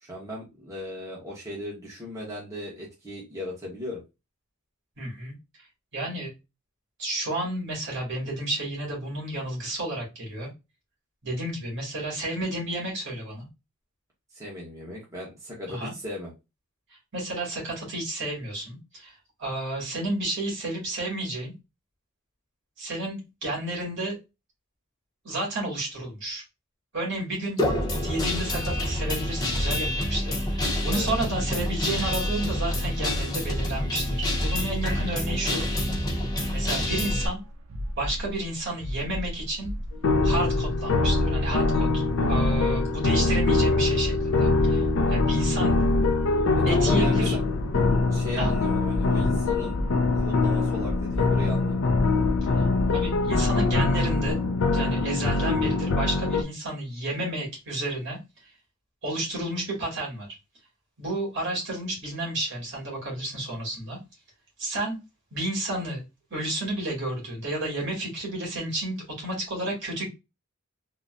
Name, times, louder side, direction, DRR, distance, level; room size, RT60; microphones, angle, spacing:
voice 1, 0.0-4.0 14.3-16.3 30.9-31.1 45.0-45.7 46.6-47.4 48.1-49.8 50.1-51.9, equal, 15° right, 1.0 m, -37 dB
voice 2, 5.0-5.3 5.9-6.3 7.0-10.5 11.2-13.5 15.7-15.9 17.1-21.5 22.8-24.2 25.2-26.4 26.9-27.6 28.0-35.6 36.5-37.4 38.0-39.7 40.2-45.8 46.6-47.3 48.3-48.5 52.6-52.7 52.9-54.4 54.7-58.2 59.0-60.3 61.0-64.0 64.6-65.0 65.3-66.0 66.3-70.1, right 1 dB, 60° right, 1.8 m, -31 dB
Guitar, 27.6-37.3, left 1 dB, 20° left, 0.7 m, -27 dB
sound 1, 36.9-54.3, equal, 75° right, 0.6 m, -35 dB
sound 2, 40.0-56.4, left 3 dB, 65° left, 0.4 m, -23 dB
3.9 x 2.1 x 2.5 m
head